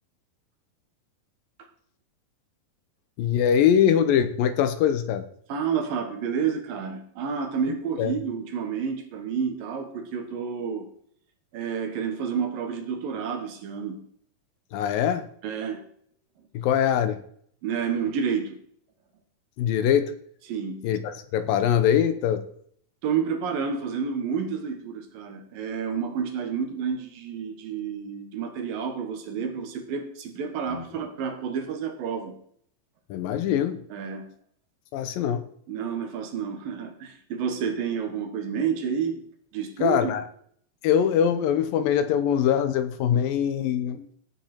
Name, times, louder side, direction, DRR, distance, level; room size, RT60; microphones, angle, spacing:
voice 1, 3.2-5.3 8.0-8.1 14.7-15.3 16.5-17.2 19.6-20.1 20.8-22.4 30.7-30.8 33.1-33.8 34.9-35.5 39.8-40.2 40.8-44.1, left 9 dB, 75° left, 10 dB, 2.4 m, -23 dB
voice 2, 5.5-10.9 11.5-14.0 15.4-15.8 17.6-18.6 20.5-20.9 23.0-32.4 33.9-34.3 35.7-39.3 39.5-40.2, right 6 dB, 70° right, 6 dB, 3.0 m, -30 dB
15.5 x 8.7 x 4.4 m, 0.63 s
omnidirectional pair, 4.4 m